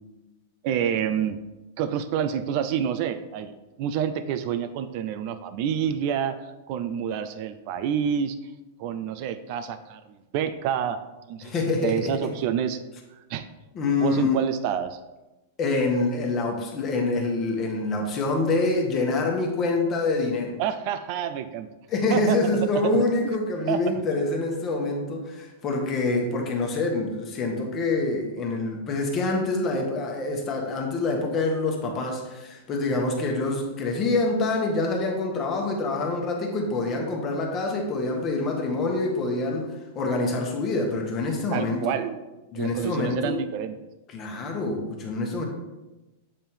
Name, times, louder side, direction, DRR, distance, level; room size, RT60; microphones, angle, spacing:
voice 1, 0.6-1.4 1.8-8.4 8.8-11.5 11.8-12.8 13.1-13.5 14.0-15.0 20.6-21.7 22.1-22.4 22.8-23.0 23.7-23.8 41.5-42.2 42.6-43.8, right 8 dB, 50° right, 11 dB, 0.4 m, -28 dB
voice 2, 11.4-12.3 13.7-14.4 15.6-20.5 21.9-39.7 39.9-42.0 42.5-43.4 44.1-45.4, left 3 dB, 30° left, 1 dB, 1.2 m, -26 dB
7.3 x 3.5 x 4.4 m, 1.1 s
supercardioid pair, 145°, 0 cm